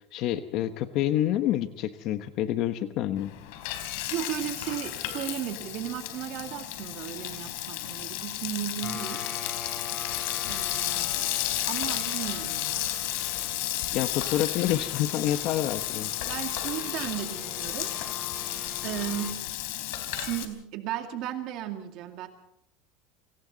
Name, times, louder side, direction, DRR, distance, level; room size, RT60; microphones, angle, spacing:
voice 1, 0.1-3.3 13.9-16.1, left 12 dB, 45° left, 9 dB, 1.2 m, -28 dB
Frying (food), 3.2-20.5, left 13 dB, 70° left, 4.1 m, -33 dB
voice 2, 4.1-9.2 10.5-11.3 11.7-12.9 16.2-17.9 18.8-19.4 20.1-22.3, right 11 dB, 50° right, 5 dB, 2.2 m, -35 dB
sound 1, 8.8-19.3, left 5 dB, 25° left, 3.4 m, -43 dB
28.5 x 25.5 x 4.1 m, 0.71 s
supercardioid pair, 160°, 0 cm